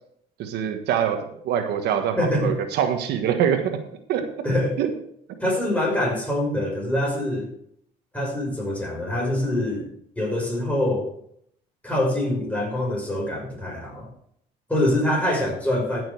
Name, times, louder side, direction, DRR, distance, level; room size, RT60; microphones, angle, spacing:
voice 1, 0.4-3.8 4.1-4.2 4.8-4.9, right 9 dB, 80° right, 6 dB, 1.4 m, -24 dB
voice 2, 2.2-2.6 4.4-4.8 5.4-7.5 8.1-9.9 10.2-11.1 11.8-14.1 14.7-16.0, left 1 dB, 10° left, -1 dB, 5.3 m, -24 dB
14.0 x 6.4 x 4.8 m, 0.69 s
cardioid pair, 110°, 17 cm